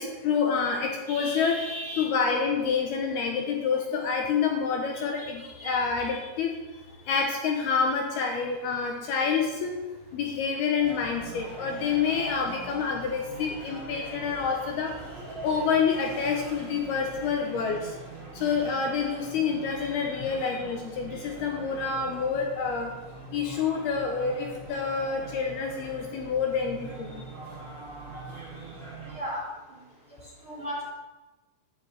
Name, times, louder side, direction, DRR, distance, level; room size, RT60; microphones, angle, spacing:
voice 1, 0.0-1.6 2.0-6.6 7.1-9.7 10.1-14.9 15.4-17.9 18.3-22.9 23.3-27.2, left 5 dB, 70° left, 2 dB, 2.7 m, -28 dB
voice 2, 1.1-2.1 4.9-5.7 6.0-6.2 19.8-20.0 29.1-29.5 30.4-30.9, equal, 40° right, -5 dB, 2.0 m, -37 dB
sound 1, 10.8-29.2, right 2 dB, 15° right, 3.4 m, -42 dB
12.0 x 5.9 x 9.3 m, 1.1 s
omnidirectional pair, 5.5 m